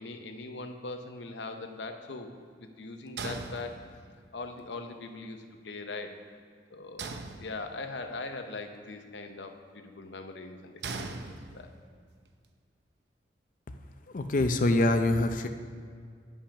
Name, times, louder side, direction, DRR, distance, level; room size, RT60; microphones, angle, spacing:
voice 1, 0.0-2.3 2.6-4.0 4.3-6.2 6.7-11.2 11.5-11.7, left 3 dB, 80° left, 6 dB, 0.7 m, -41 dB
sound 1, 3.2-4.3 7.0-8.0 10.8-11.9, right 3 dB, 65° right, 0.6 m, -40 dB
voice 2, 14.1-15.5, left 2 dB, 45° left, 7 dB, 0.5 m, -25 dB
8.5 x 5.6 x 5.7 m, 2.1 s
head